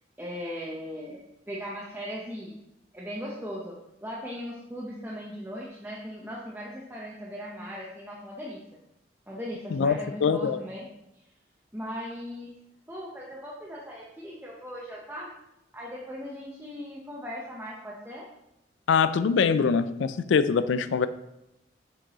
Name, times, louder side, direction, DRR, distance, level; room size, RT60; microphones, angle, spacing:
voice 1, 0.2-1.2 1.5-2.5 2.9-3.7 4.0-8.6 9.3-10.9 11.1-11.2 11.7-12.5 12.9-15.3 15.7-18.3, equal, 10° right, -5 dB, 0.7 m, -38 dB
voice 2, 9.7-10.6 18.9-21.1, left 6 dB, 90° left, 13 dB, 0.4 m, -23 dB
7.4 x 4.6 x 3.0 m, 0.88 s
head